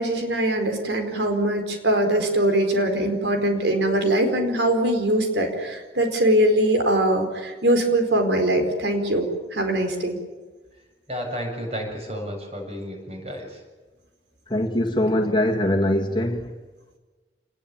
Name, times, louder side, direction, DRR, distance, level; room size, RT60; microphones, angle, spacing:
voice 1, 0.0-10.2, right 1 dB, 80° right, 4.6 m, -22 dB
voice 2, 11.1-13.6, equal, 35° right, 7.3 m, -32 dB
voice 3, 14.5-16.5, left 1 dB, 25° left, 2.0 m, -22 dB
27.0 x 20.5 x 9.0 m
head